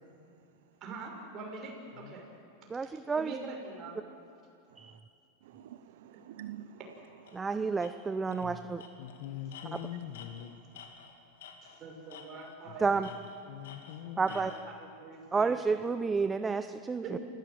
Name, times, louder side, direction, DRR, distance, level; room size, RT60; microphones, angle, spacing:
voice 1, 0.8-2.2 2.8-4.0 11.6-13.0 14.2-15.7 17.0-17.2, right 3 dB, 40° right, 1 dB, 6.4 m, -44 dB
voice 2, 2.7-3.3 4.8-4.9 7.3-8.8 9.7-9.8 12.8-13.1 14.2-14.5 15.3-17.2, right 4 dB, 15° right, 10 dB, 0.7 m, -30 dB
voice 3, 5.4-6.8 7.3-7.6 9.9-10.0, right 12 dB, 70° right, 11 dB, 0.7 m, -48 dB
Tools, 7.3-7.4 7.8-7.9 8.3-8.5 8.8-11.8 12.1-12.6 13.0-14.7, left 7 dB, 80° left, 2.7 m, -51 dB
voice 4, 9.0-10.6 13.5-14.2, left 11 dB, 65° left, 11 dB, 1.3 m, -42 dB
28.0 x 16.0 x 7.9 m, 2.5 s
hypercardioid pair, 115°, 0 cm